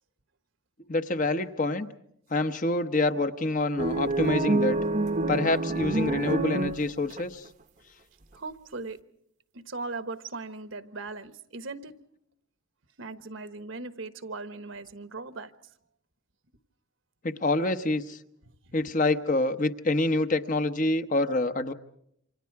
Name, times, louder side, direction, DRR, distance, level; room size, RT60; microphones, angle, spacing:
voice 1, 0.9-1.9 2.3-4.8 5.3-7.4 17.2-18.2 18.7-21.7, left 2 dB, 40° left, 0.9 m, -26 dB
sound 1, 3.8-7.2, right 2 dB, 35° right, 0.9 m, -27 dB
voice 2, 8.3-9.0 9.5-12.0 13.0-15.7 18.6-18.7, right 3 dB, 60° right, 1.2 m, -39 dB
28.5 x 26.0 x 4.7 m
head